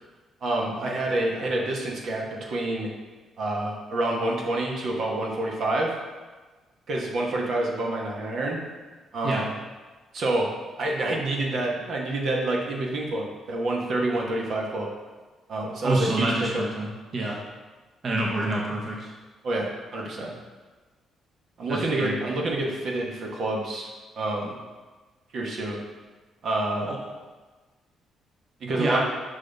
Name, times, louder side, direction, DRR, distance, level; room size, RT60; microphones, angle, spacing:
voice 1, 0.4-2.9 3.4-5.9 6.9-8.6 9.1-9.5 10.1-10.5 10.8-14.9 15.5-16.6 19.4-20.3 21.6-23.9 24.2-24.5 25.3-25.8 26.4-27.0 28.6-29.0, right 2 dB, 65° right, -2 dB, 1.2 m, -27 dB
voice 2, 15.8-17.4 18.0-19.1 21.7-22.2 26.9-27.0 28.8-29.0, right 2 dB, 45° right, -2 dB, 1.1 m, -27 dB
6.0 x 5.5 x 3.4 m, 1.3 s
cardioid pair, 90°, 0 cm